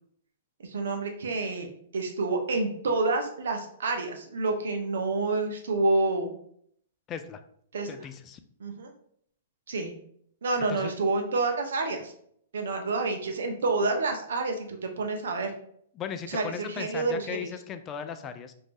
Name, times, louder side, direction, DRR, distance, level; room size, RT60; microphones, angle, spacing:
voice 1, 0.6-1.7 1.9-6.3 7.7-7.9 8.6-8.9 9.7-9.9 10.4-12.1 12.5-15.5 16.3-17.5, right 3 dB, 75° right, 4 dB, 0.7 m, -28 dB
voice 2, 7.1-7.4 7.9-8.4 10.7-10.9 15.9-18.5, left 8 dB, 25° left, 9 dB, 0.3 m, -37 dB
3.1 x 2.7 x 3.3 m, 0.66 s
hypercardioid pair, 125°, 0 cm